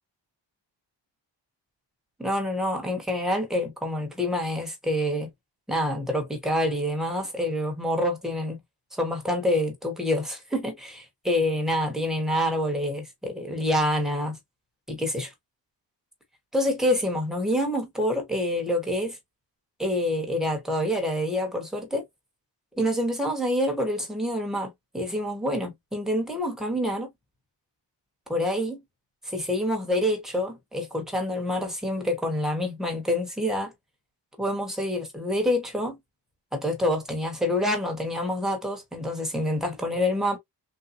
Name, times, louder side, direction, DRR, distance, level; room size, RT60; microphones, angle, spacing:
voice 1, 2.2-5.3 5.7-8.6 8.9-14.4 14.9-15.3 16.5-19.2 19.8-22.0 22.8-27.1 28.3-28.8 29.2-33.7 34.4-36.0 36.5-40.4, left 1 dB, ahead, 1.0 m, -27 dB
3.5 x 2.7 x 2.5 m
wide cardioid pair, 180°, 44 cm